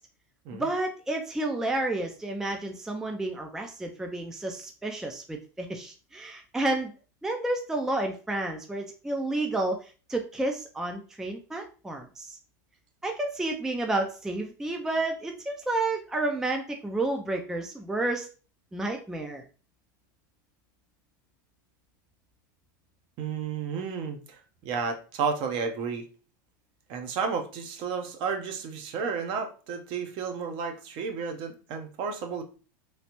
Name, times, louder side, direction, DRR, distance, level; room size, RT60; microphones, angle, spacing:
voice 1, 0.5-6.9 7.2-12.4 13.0-18.3 18.7-19.4, right 2 dB, 5° right, 3 dB, 0.4 m, -31 dB
voice 2, 23.2-26.0 26.9-32.4, right 5 dB, 45° right, 5 dB, 0.7 m, -32 dB
3.2 x 2.4 x 2.9 m, 0.36 s
hypercardioid pair, 115°, 11 cm